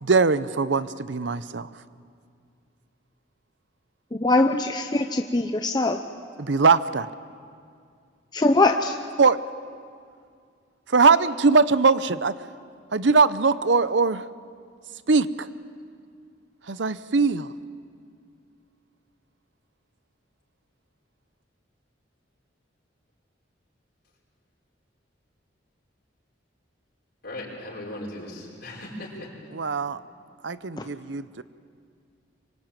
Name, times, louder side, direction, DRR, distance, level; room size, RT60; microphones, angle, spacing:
voice 1, 0.0-1.7 6.4-7.1 9.2-9.4 10.9-12.3 12.9-14.2 15.1-15.5 16.7-17.5 29.5-30.0 30.4-31.4, right 4 dB, 70° right, 15 dB, 0.8 m, -21 dB
voice 2, 4.1-6.0 8.3-9.0 30.8-30.9, left 2 dB, 25° left, 5 dB, 0.8 m, -22 dB
voice 3, 27.2-29.3, left 1 dB, 60° left, -5 dB, 6.0 m, -37 dB
25.5 x 23.5 x 9.1 m, 2.3 s
head